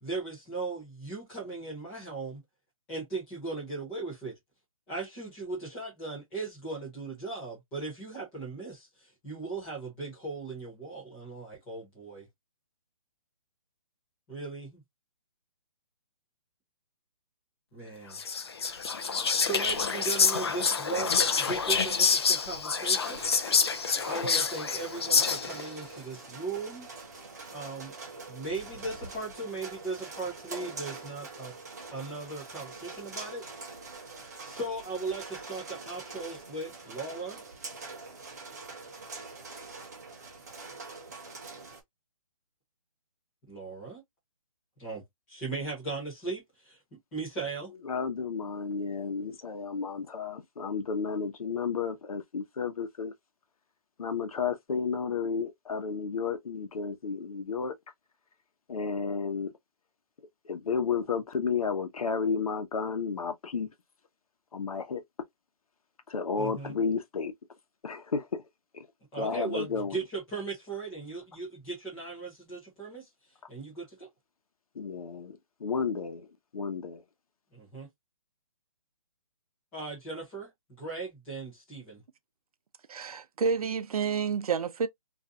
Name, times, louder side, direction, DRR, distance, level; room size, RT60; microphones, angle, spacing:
voice 1, 0.0-2.4 2.9-4.3 4.9-8.9 9.2-12.3 14.3-14.8 17.7-18.2 19.4-23.2 24.0-26.9 27.5-27.9 28.3-31.5 31.9-33.4 34.4-37.4 43.5-44.0 44.8-45.0 45.3-46.8 47.1-47.7 66.4-66.8 69.1-73.0 73.5-74.1 77.5-77.9 79.7-80.5 80.8-82.0, right 3 dB, 5° left, 0.7 m, -38 dB
Whispering, 18.1-25.7, left 5 dB, 45° left, 0.4 m, -27 dB
sound 1, 22.7-41.8, right 3 dB, 30° right, 0.6 m, -44 dB
voice 2, 47.8-53.1 54.0-57.7 58.7-59.5 60.4-63.7 64.5-65.0 66.1-67.3 67.8-68.4 68.7-68.9 69.2-70.0 74.7-76.3 76.5-77.0, left 5 dB, 75° left, 0.9 m, -32 dB
voice 3, 82.9-84.9, right 6 dB, 80° right, 0.5 m, -29 dB
2.6 x 2.2 x 3.7 m
hypercardioid pair, 180°, 18 cm